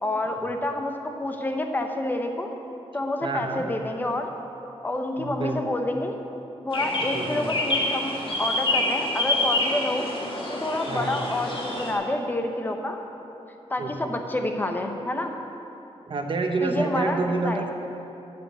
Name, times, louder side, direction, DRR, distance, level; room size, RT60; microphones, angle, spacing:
voice 1, 0.0-2.5 2.9-4.3 4.8-6.2 6.6-10.1 10.5-13.0 13.7-15.3 16.6-17.6, left 1 dB, 15° left, 4 dB, 0.7 m, -28 dB
voice 2, 3.2-3.6 5.2-5.7 7.1-7.6 10.9-11.1 13.8-14.1 16.1-17.7, right 3 dB, 45° right, 4 dB, 0.9 m, -28 dB
sound 1, 6.7-11.9, left 2 dB, 50° left, 1.6 m, -27 dB
11.5 x 5.2 x 7.9 m, 2.9 s
wide cardioid pair, 170°, 11 cm